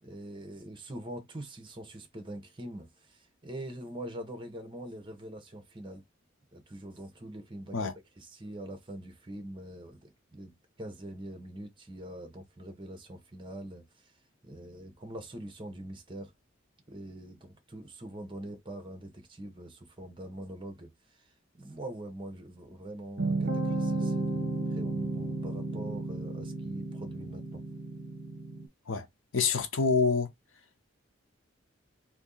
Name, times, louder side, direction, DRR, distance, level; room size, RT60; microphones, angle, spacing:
voice 1, 0.0-6.0 6.5-14.1 14.4-16.3 16.9-27.6, right 1 dB, 25° right, 0.9 m, -44 dB
sound 1, 23.2-28.7, right 2 dB, 55° right, 0.8 m, -33 dB
voice 2, 29.3-30.3, left 5 dB, 80° left, 0.6 m, -26 dB
2.8 x 2.6 x 3.8 m
head